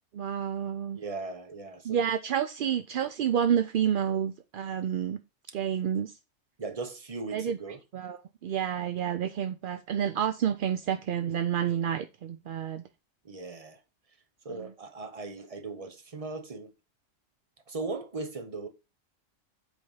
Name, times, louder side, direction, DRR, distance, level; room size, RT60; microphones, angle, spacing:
voice 1, 0.1-1.0 1.8-5.2 5.5-6.2 7.3-12.8 14.5-14.7, right 9 dB, 65° right, 0.5 m, -29 dB
voice 2, 0.9-2.1 6.6-7.8 13.2-13.8 14.4-16.7 17.7-18.7, right 3 dB, 30° right, 1.0 m, -38 dB
8.1 x 3.5 x 5.5 m
omnidirectional pair, 1.3 m